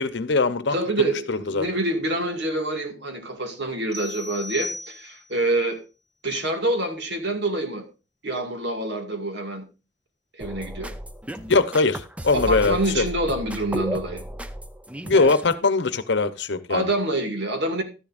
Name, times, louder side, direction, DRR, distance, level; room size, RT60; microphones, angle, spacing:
voice 1, 0.0-0.8 1.3-1.6 11.5-13.0 15.0-16.9, left 3 dB, 70° left, 0.8 m, -21 dB
voice 2, 0.7-5.8 6.2-7.9 8.2-9.7 10.4-10.9 12.3-14.2 16.7-17.8, right 1 dB, 65° right, 2.2 m, -26 dB
sound 1, 3.9-5.4, left 2 dB, 35° right, 1.6 m, -36 dB
sound 2, 10.4-15.5, right 1 dB, 5° right, 0.5 m, -33 dB
12.5 x 10.5 x 2.5 m
head